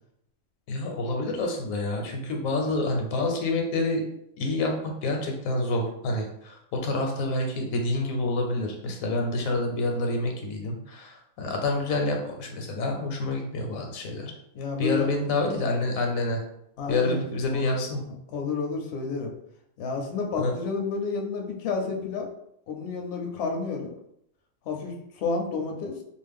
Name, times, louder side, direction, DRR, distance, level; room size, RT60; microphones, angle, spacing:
voice 1, 0.7-4.0 4.4-14.3 14.8-16.4 16.9-18.0 20.4-20.5, left 2 dB, 85° left, 2 dB, 1.1 m, -28 dB
voice 2, 14.5-15.1 16.8-17.2 17.5-17.8 18.0-19.3 19.8-22.3 22.7-23.9 24.7-25.9, left 4 dB, 65° left, 1 dB, 0.7 m, -30 dB
2.4 x 2.0 x 3.4 m, 0.75 s
omnidirectional pair, 1.4 m